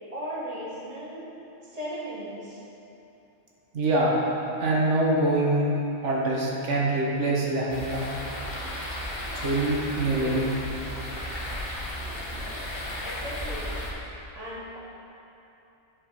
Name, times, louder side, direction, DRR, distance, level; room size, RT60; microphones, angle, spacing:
voice 1, 0.1-1.3 1.6-2.6 13.0-13.7 14.3-14.8, equal, 30° right, -6 dB, 1.7 m, -36 dB
voice 2, 3.7-4.2 4.6-5.7 6.0-8.1 9.3-10.6, right 2 dB, 75° right, -4 dB, 1.6 m, -24 dB
sound 1, 7.7-13.9, left 1 dB, 50° left, 1.7 m, -34 dB
10.5 x 5.4 x 5.3 m, 2.9 s
omnidirectional pair, 1.2 m